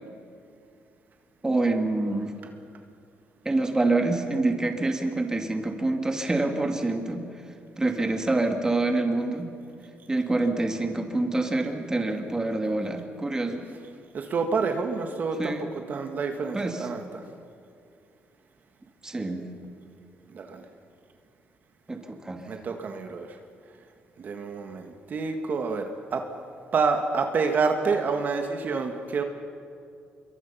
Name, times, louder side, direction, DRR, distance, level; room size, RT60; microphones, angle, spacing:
voice 1, 1.4-2.3 3.4-7.3 7.8-9.5 10.1-13.6 15.4-15.7 16.5-16.9 19.0-19.5 21.9-22.5, right 2 dB, 15° right, 4 dB, 2.3 m, -26 dB
voice 2, 14.1-15.5 15.9-17.0 20.3-20.6 22.5-23.3 24.2-25.9 26.1-26.2 26.7-29.2, right 4 dB, 50° right, 5 dB, 1.8 m, -28 dB
26.0 x 23.0 x 5.7 m, 2.4 s
cardioid pair, 115°, 4 cm